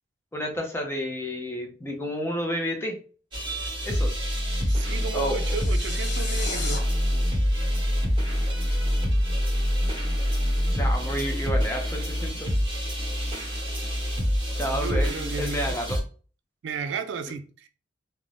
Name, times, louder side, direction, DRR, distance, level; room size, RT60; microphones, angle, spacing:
voice 1, 0.3-3.0 3.8-4.1 5.1-5.4 10.7-12.5 14.6-16.0, equal, 15° left, 0.5 m, -30 dB
sound 1, 3.3-16.0, equal, 25° right, 1.1 m, -26 dB
sound 2, 4.5-6.8, left 4 dB, 75° left, 0.8 m, -37 dB
voice 2, 4.7-6.8 14.7-15.8 16.6-17.7, right 6 dB, 85° right, 0.3 m, -34 dB
2.5 x 2.1 x 3.2 m
head